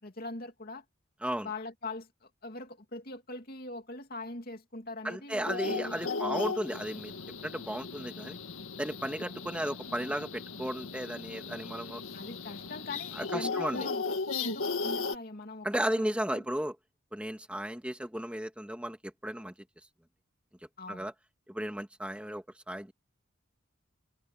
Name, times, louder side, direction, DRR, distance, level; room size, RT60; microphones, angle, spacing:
voice 1, 0.0-0.8 1.4-6.5 12.1-14.0 14.4-16.4 20.8-21.1, left 2 dB, 45° left, 2.6 m, -42 dB
voice 2, 5.0-7.1 7.4-8.4 8.8-12.0 13.1-13.9 15.6-16.7 17.1-19.5 20.9-21.1 21.5-22.9, right 1 dB, 5° right, 2.0 m, -34 dB
sound 1, 5.5-15.2, left 4 dB, 85° left, 1.8 m, -36 dB
head